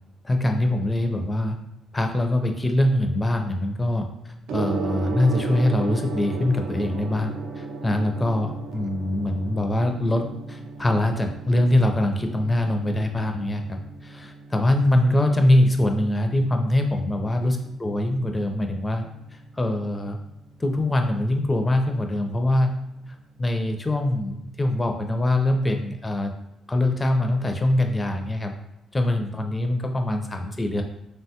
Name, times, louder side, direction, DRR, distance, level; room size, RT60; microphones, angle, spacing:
voice 1, 0.2-1.6 1.9-19.0 19.5-20.2 20.6-22.7 23.4-26.3 26.7-28.5 28.9-30.8, left 1 dB, 20° left, 4 dB, 0.4 m, -23 dB
Gong, 4.5-23.5, right 4 dB, 80° right, 0.4 m, -37 dB
3.1 x 2.2 x 2.7 m, 0.84 s
cardioid pair, 90°, 0 cm